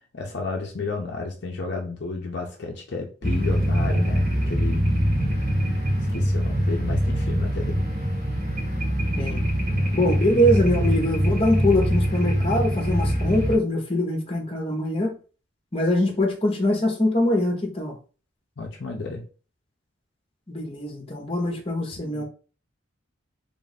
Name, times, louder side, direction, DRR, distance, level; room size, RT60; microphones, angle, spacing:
voice 1, 0.1-4.8 5.7-5.9 6.1-7.8 10.0-10.4 18.6-19.2 22.0-22.2, left 3 dB, 55° left, 0.6 m, -32 dB
sound 1, 3.2-13.6, equal, 50° right, 2.1 m, -23 dB
voice 2, 9.9-15.2 15.7-17.9 20.5-22.2, left 1 dB, 30° left, 0.9 m, -23 dB
3.5 x 2.5 x 4.0 m
head